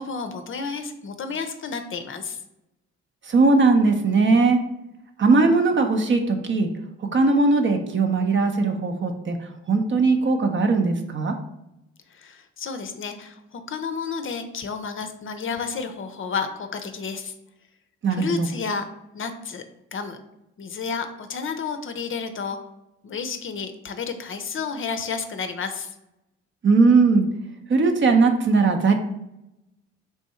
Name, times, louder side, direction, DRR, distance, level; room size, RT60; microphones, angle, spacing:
voice 1, 0.0-2.4 12.1-17.3 18.1-18.9 19.1-19.6 19.9-20.2 20.6-22.6 23.0-25.9, left 5 dB, 40° left, 8 dB, 0.5 m, -31 dB
voice 2, 3.3-4.6 5.2-6.7 7.1-9.4 9.7-11.3 18.0-18.5 26.6-27.2 27.7-28.9, right 3 dB, 40° right, 5 dB, 0.7 m, -19 dB
3.5 x 2.6 x 4.2 m, 0.87 s
supercardioid pair, 60°, 30 cm